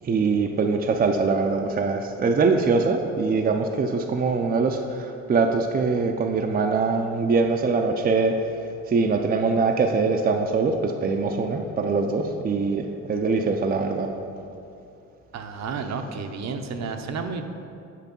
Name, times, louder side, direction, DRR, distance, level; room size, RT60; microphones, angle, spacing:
voice 1, 0.0-14.1, right 4 dB, 30° right, 4 dB, 0.5 m, -23 dB
voice 2, 15.3-17.4, right 5 dB, 60° right, 6 dB, 0.8 m, -31 dB
8.3 x 4.6 x 5.3 m, 2.6 s
cardioid pair, 90°, 30 cm